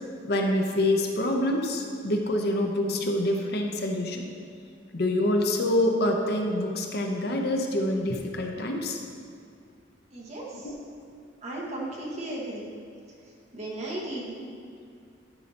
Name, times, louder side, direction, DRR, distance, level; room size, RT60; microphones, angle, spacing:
voice 1, 0.2-4.3 4.9-9.0 10.6-10.8, left 1 dB, 60° left, 2 dB, 0.7 m, -26 dB
voice 2, 10.1-10.7 11.4-12.7 13.5-14.5, right 1 dB, 40° right, -4 dB, 1.5 m, -35 dB
11.5 x 5.5 x 2.9 m, 2.3 s
head